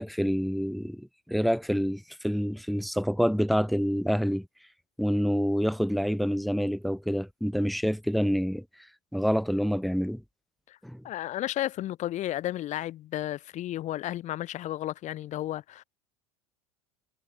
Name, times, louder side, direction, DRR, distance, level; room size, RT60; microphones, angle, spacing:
voice 1, 0.0-4.5 5.0-8.6 9.1-10.2 10.8-11.0, equal, ahead, 2.5 m, -27 dB
voice 2, 11.0-15.8, left 13 dB, 40° left, 1.6 m, -33 dB
hypercardioid pair, 80°, 18 cm